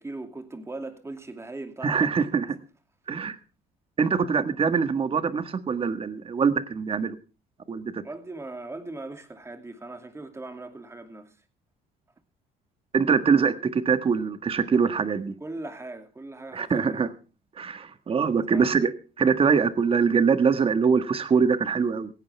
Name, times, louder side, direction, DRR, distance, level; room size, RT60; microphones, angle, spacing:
voice 1, 0.0-2.3 8.0-11.3 15.4-17.0 18.5-18.8, right 2 dB, 15° right, 2.6 m, -39 dB
voice 2, 1.8-2.6 3.1-3.4 4.0-7.2 7.7-8.0 12.9-15.3 16.5-17.1 17.6-18.9 19.2-22.1, right 5 dB, 35° right, 1.6 m, -23 dB
16.5 x 16.5 x 3.4 m
cardioid pair, 110°, 17 cm